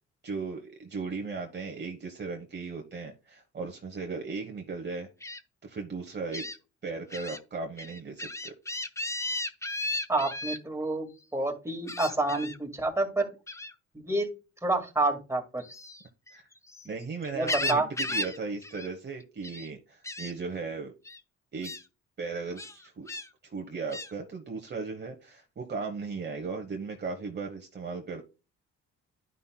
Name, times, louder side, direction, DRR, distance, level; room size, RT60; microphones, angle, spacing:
voice 1, 0.2-5.1 5.6-6.4 6.8-8.5 16.3-16.5 16.8-20.9 21.5-21.7 22.2-23.1 23.4-28.2, right 4 dB, 35° right, 3 dB, 1.1 m, -37 dB
Gull seagull, 5.2-5.4 6.3-6.6 7.1-7.4 7.8-10.6 11.9-12.6 13.5-13.7 15.6-16.9 17.2-18.4 18.6-18.9 19.2-19.7 20.0-20.3 21.0-21.2 21.6-21.8 22.6-23.3 23.9-24.1, left 2 dB, 10° left, 0.6 m, -35 dB
voice 2, 10.1-13.3 13.9-14.3 14.6-15.6 17.3-17.9, right 2 dB, 10° right, 2 dB, 2.0 m, -28 dB
11.0 x 5.5 x 2.3 m, 0.30 s
cardioid pair, 90°, 30 cm